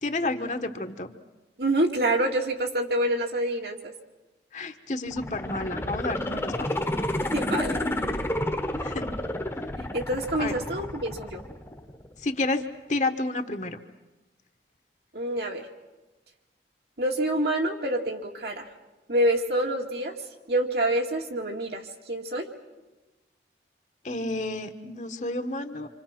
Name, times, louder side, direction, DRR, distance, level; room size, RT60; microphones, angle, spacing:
voice 1, 0.0-1.2 4.5-6.7 8.8-9.1 10.4-10.5 12.2-13.8 24.0-25.9, left 2 dB, 45° left, 7 dB, 1.3 m, -30 dB
voice 2, 1.6-3.9 7.3-7.8 9.9-11.4 15.1-15.7 17.0-18.7 19.1-20.1 20.5-22.5, right 1 dB, 65° right, 2 dB, 2.4 m, -27 dB
sound 1, 5.1-12.1 12.4-12.5, left 1 dB, 15° left, 1.2 m, -30 dB
27.0 x 26.5 x 6.0 m, 1.1 s
head